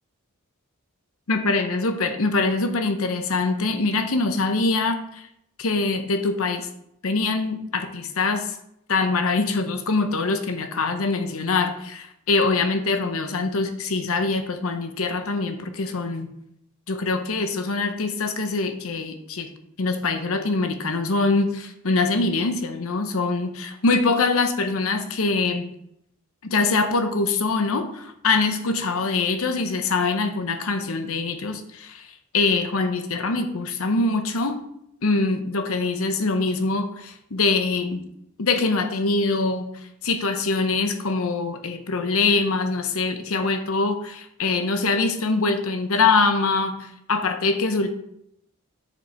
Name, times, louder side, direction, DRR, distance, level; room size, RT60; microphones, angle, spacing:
voice 1, 1.3-5.3 5.6-6.7 7.0-8.5 8.9-16.3 16.9-19.5 19.8-25.7 26.4-32.1 32.3-34.6 35.0-38.0 38.4-39.7 40.0-47.9, left 3 dB, 75° left, 7 dB, 0.8 m, -23 dB
6.2 x 5.4 x 4.4 m, 0.75 s
head